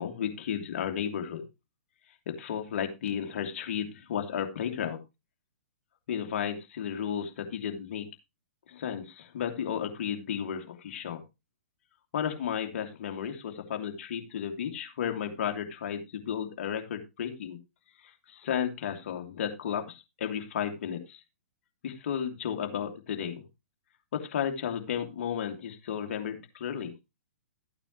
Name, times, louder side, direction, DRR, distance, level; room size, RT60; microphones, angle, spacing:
voice 1, 0.0-1.4 2.3-5.0 6.1-8.1 8.7-11.2 12.1-17.6 18.0-21.2 21.8-23.4 24.1-26.9, left 8 dB, 55° left, 5 dB, 2.7 m, -33 dB
14.0 x 8.9 x 3.0 m, 0.25 s
figure-of-eight pair, 120°, 8 cm